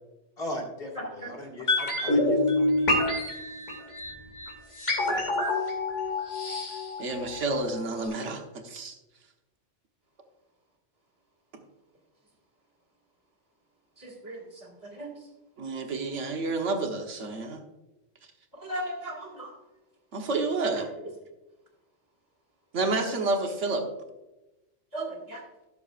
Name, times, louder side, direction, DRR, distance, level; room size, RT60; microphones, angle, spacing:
voice 1, 0.4-2.9, left 1 dB, 50° left, -1 dB, 2.3 m, -38 dB
sound 1, 1.7-7.7 8.0-8.1, left 2 dB, 80° left, 2.7 m, -27 dB
voice 2, 7.0-9.0 15.6-17.6 20.1-20.9 22.7-23.9, right 3 dB, 80° right, 4 dB, 1.5 m, -29 dB
voice 3, 14.0-14.4 14.9-15.1 18.6-19.5 24.9-25.4, right 1 dB, 15° right, -5 dB, 2.2 m, -36 dB
16.5 x 6.9 x 2.5 m, 1.0 s
omnidirectional pair, 1.2 m